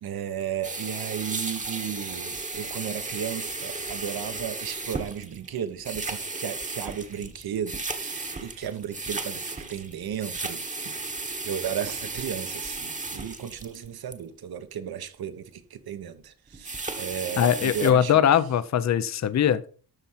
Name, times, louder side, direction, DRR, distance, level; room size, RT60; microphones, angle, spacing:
voice 1, 0.0-11.0 11.4-18.2, right 9 dB, 60° right, 1.2 m, -34 dB
sound 1, 0.6-14.1 16.5-17.9, right 3 dB, 20° right, 1.2 m, -35 dB
voice 2, 17.4-19.7, left 9 dB, 40° left, 0.7 m, -21 dB
13.0 x 4.4 x 5.7 m
cardioid pair, 120°, 41 cm